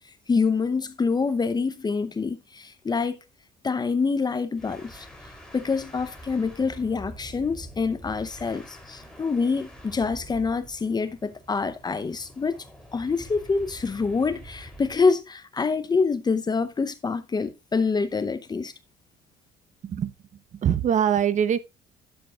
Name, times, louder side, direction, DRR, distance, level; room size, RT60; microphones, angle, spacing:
voice 1, 0.3-3.2 3.6-5.1 5.5-12.6 12.9-18.7, left 4 dB, 25° left, 0.8 m, -26 dB
sound 1, 4.5-15.1, equal, 5° left, 3.3 m, -46 dB
voice 2, 19.8-20.1 20.5-21.6, right 9 dB, 45° right, 0.9 m, -23 dB
11.5 x 7.5 x 2.4 m
cardioid pair, 110°, 17 cm